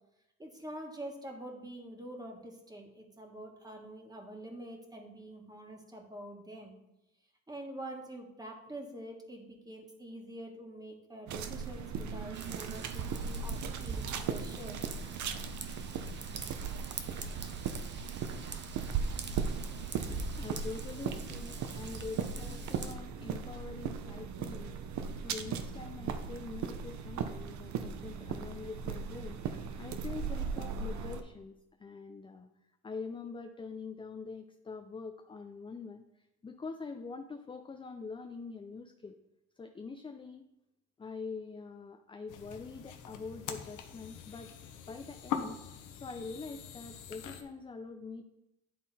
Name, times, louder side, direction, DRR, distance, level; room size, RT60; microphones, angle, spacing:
voice 1, 0.4-6.7 7.5-14.8, right 1 dB, 10° right, 1 dB, 1.5 m, -46 dB
sound 1, 11.3-31.2, right 6 dB, 70° right, 0.7 m, -38 dB
Raindrop / Vehicle horn car horn honking / Trickle dribble, 12.3-22.9, right 4 dB, 35° right, 0.8 m, -45 dB
voice 2, 20.1-24.8 25.2-31.5 31.8-32.5 32.8-36.0 36.4-39.2 39.6-40.4 41.0-44.5 44.9-48.2, left 4 dB, 15° left, 6 dB, 0.4 m, -44 dB
sound 2, 42.3-47.4, left 8 dB, 80° left, 0.8 m, -42 dB
10.0 x 3.7 x 4.1 m, 0.90 s
cardioid pair, 90°, 30 cm